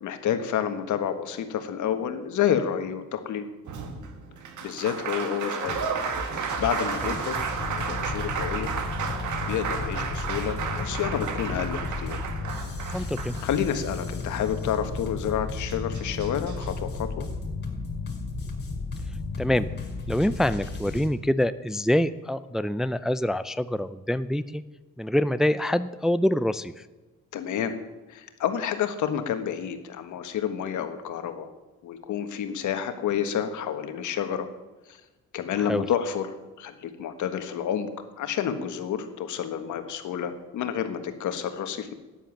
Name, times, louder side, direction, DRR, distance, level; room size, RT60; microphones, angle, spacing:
voice 1, 0.0-3.5 4.6-5.9 6.4-7.4 7.6-8.7 9.4-12.2 12.9-13.1 13.4-17.3 27.3-27.7 28.1-31.5 31.8-34.5 34.9-35.0 35.3-37.9 38.2-41.9, left 9 dB, 75° left, 8 dB, 1.6 m, -29 dB
Applause, 3.7-13.9 15.3-15.4 15.7-16.7, right 6 dB, 75° right, 1.9 m, -33 dB
sound 1, 5.6-21.1, left 3 dB, 35° left, 4.7 m, -34 dB
voice 2, 12.9-13.3 19.4-19.7 20.1-24.6 25.0-26.8 35.5-35.8, left 1 dB, ahead, 13 dB, 0.5 m, -25 dB
13.0 x 10.5 x 7.3 m, 1.2 s
cardioid pair, 90°, 30 cm